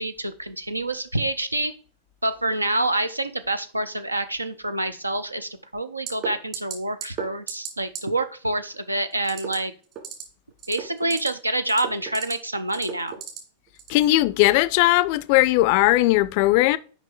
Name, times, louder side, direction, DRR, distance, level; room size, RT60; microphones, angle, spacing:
voice 1, 0.0-1.7 2.2-9.7 10.7-13.1, right 2 dB, 85° right, 0.5 m, -27 dB
sound 1, 6.1-6.3 6.5-6.7 7.0-7.2 7.5-7.7 7.9-8.0 9.2-9.5 9.9-10.2 10.6-11.3 11.6-12.3 12.7-13.4 13.8-14.0, right 9 dB, 40° right, 2.2 m, -33 dB
voice 2, 13.9-16.8, left 18 dB, 45° left, 0.4 m, -18 dB
6.2 x 5.1 x 3.9 m
figure-of-eight pair, 90°, 0 cm